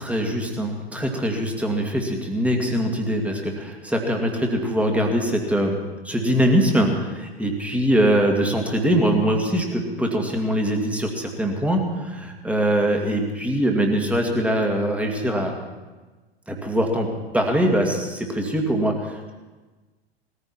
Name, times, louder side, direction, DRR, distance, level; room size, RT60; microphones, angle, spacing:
voice 1, 0.0-5.8 6.0-15.5 16.5-17.1 17.3-19.3, right 1 dB, 5° right, 1 dB, 2.4 m, -22 dB
20.0 x 14.5 x 4.5 m, 1.3 s
figure-of-eight pair, 90°, 32 cm